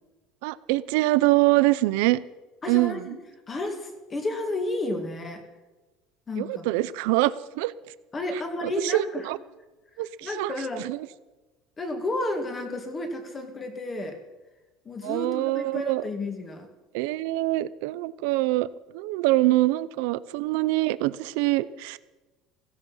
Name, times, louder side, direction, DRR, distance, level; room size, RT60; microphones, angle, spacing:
voice 1, 0.4-2.2 2.7-3.2 6.4-7.7 8.6-9.4 10.0-10.5 10.8-11.0 15.0-16.0 16.9-18.7 18.9-22.0, right 18 dB, 75° right, 16 dB, 0.7 m, -24 dB
voice 2, 2.6-3.2 3.5-5.4 6.3-6.7 8.1-9.3 10.2-10.9 11.8-14.2 14.9-16.7, left 2 dB, 20° left, 5 dB, 2.1 m, -32 dB
16.0 x 16.0 x 5.7 m, 1.2 s
cardioid pair, 165°, 0 cm